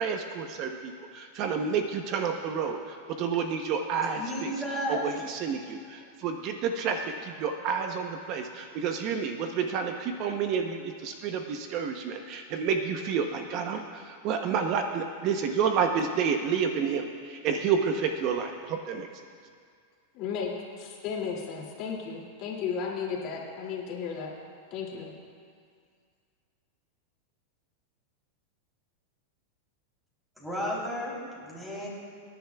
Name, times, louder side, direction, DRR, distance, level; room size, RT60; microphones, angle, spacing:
voice 1, 0.0-2.8 3.2-4.5 4.9-19.1, right 6 dB, 40° right, 5 dB, 0.7 m, -29 dB
voice 2, 4.1-5.0 30.4-31.9, equal, 5° right, -5 dB, 3.2 m, -33 dB
voice 3, 20.1-24.3 24.7-25.1, left 6 dB, 45° left, -2 dB, 2.4 m, -34 dB
24.5 x 10.5 x 2.3 m, 2.1 s
supercardioid pair, 145°, 0 cm